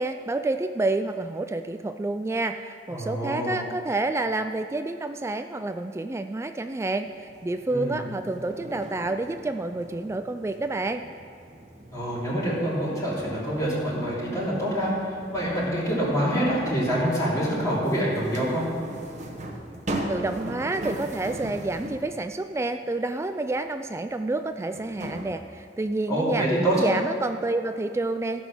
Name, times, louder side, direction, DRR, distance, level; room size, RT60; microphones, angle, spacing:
voice 1, 0.0-11.0 20.1-28.5, right 2 dB, 15° right, 8 dB, 0.3 m, -29 dB
voice 2, 2.9-3.6 7.7-7.9 11.9-14.9 15.3-18.6 26.1-26.8, right 1 dB, 20° left, -8 dB, 2.9 m, -26 dB
sound 1, 7.0-22.2 23.9-24.0 24.7-25.3, right 1 dB, 45° right, 1.2 m, -38 dB
14.5 x 6.1 x 6.1 m, 2.3 s
head